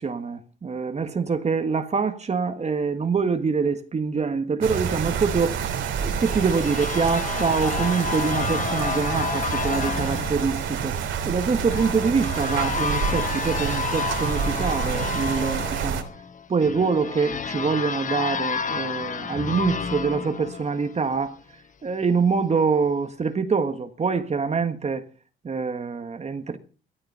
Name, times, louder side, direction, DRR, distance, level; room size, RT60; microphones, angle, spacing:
voice 1, 0.0-5.6 6.0-10.9 11.2-16.1 16.5-21.4 21.8-25.0 25.4-26.6, right 5 dB, 35° right, 1.5 m, -25 dB
sound 1, 4.6-16.0, right 7 dB, 80° right, 3.0 m, -28 dB
sound 2, 5.6-21.3, left 6 dB, 40° left, 1.0 m, -31 dB
14.0 x 13.5 x 5.6 m
cardioid pair, 90°, 20 cm